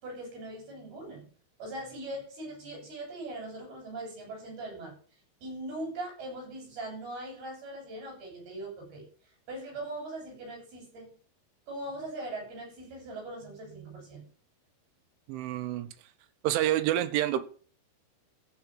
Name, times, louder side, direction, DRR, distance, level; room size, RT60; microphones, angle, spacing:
voice 1, 0.0-1.3 1.6-5.0 5.4-9.1 9.5-11.1 11.7-14.3, right 1 dB, 50° right, -1 dB, 8.9 m, -40 dB
voice 2, 15.3-15.9 16.4-17.4, right 13 dB, 75° right, 11 dB, 3.3 m, -28 dB
14.5 x 6.0 x 7.4 m, 0.43 s
omnidirectional pair, 5.8 m